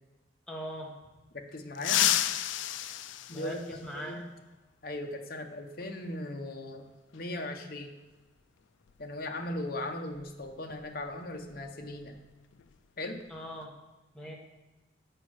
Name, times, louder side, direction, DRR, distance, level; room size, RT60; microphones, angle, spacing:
voice 1, 0.5-0.9 3.3-4.2 13.3-13.7 14.1-14.3, equal, 5° left, -2 dB, 1.1 m, -40 dB
voice 2, 1.3-2.1 3.3-4.3 4.8-6.9 7.1-7.9 9.0-12.2 13.0-13.3, left 1 dB, 50° left, 4 dB, 0.8 m, -38 dB
sound 1, 1.8-4.2 5.8-5.9 7.1-7.2 8.9-9.0 9.4-9.6 10.1-12.3 12.5-12.8 13.2-13.6, left 12 dB, 75° left, 0.3 m, -32 dB
6.6 x 5.2 x 6.3 m, 1.1 s
head